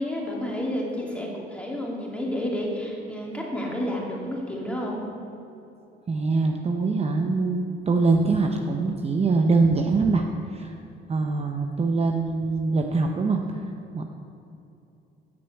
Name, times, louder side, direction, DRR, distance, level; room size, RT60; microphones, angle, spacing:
voice 1, 0.0-5.0, left 1 dB, 5° left, -3 dB, 2.6 m, -30 dB
voice 2, 6.1-10.8 11.1-14.0, right 3 dB, 30° right, 3 dB, 0.7 m, -24 dB
8.9 x 6.7 x 8.1 m, 2.8 s
cardioid pair, 90°, 20 cm